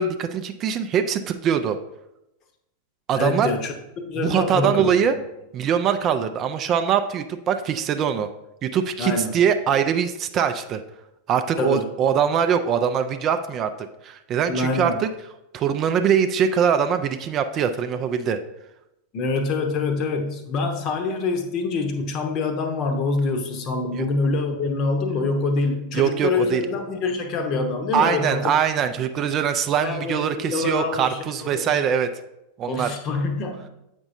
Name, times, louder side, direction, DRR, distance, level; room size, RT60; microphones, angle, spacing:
voice 1, 0.0-1.8 3.1-3.5 4.2-5.2 5.5-8.3 8.6-10.8 11.3-15.1 15.5-18.4 23.9-24.1 25.9-26.6 27.9-32.1 32.6-32.9, right 8 dB, 30° right, 8 dB, 0.4 m, -22 dB
voice 2, 3.1-3.7 4.1-5.2 9.0-9.3 11.6-11.9 14.5-15.0 19.1-28.5 29.0-29.1 29.8-31.8 32.7-33.7, left 3 dB, 35° left, 6 dB, 0.8 m, -25 dB
7.8 x 5.2 x 2.6 m, 0.89 s
figure-of-eight pair, 90°, 0 cm